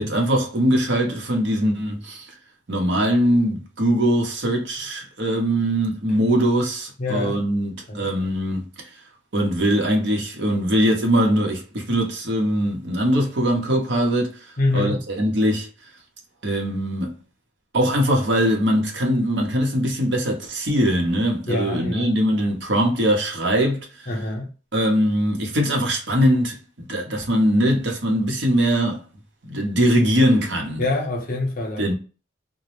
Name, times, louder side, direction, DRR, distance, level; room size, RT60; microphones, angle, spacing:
voice 1, 0.0-2.3 2.7-8.9 9.3-15.7 16.4-17.1 17.7-24.1 24.7-29.0 29.4-30.9 31.8-31.9, equal, 70° right, 0.8 m, -21 dB
voice 2, 7.0-7.4 7.9-8.1 14.6-15.0 21.5-22.5 24.1-24.5 30.8-31.9, left 2 dB, 50° left, 0.7 m, -26 dB
2.1 x 2.0 x 2.9 m
head